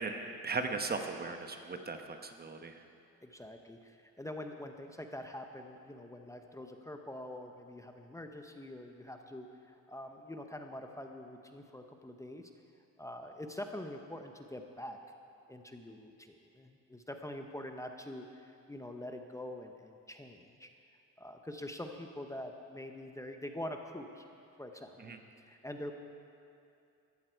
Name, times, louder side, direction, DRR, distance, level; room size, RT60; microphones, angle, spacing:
voice 1, 0.0-2.8 25.0-25.2, right 4 dB, 30° right, 6 dB, 1.1 m, -38 dB
voice 2, 3.2-12.5 13.0-15.0 15.5-20.7 21.2-24.2 24.6-25.1 25.4-25.9, left 1 dB, 10° left, 4 dB, 0.9 m, -45 dB
14.0 x 13.5 x 4.6 m, 2.5 s
cardioid pair, 90°, 30 cm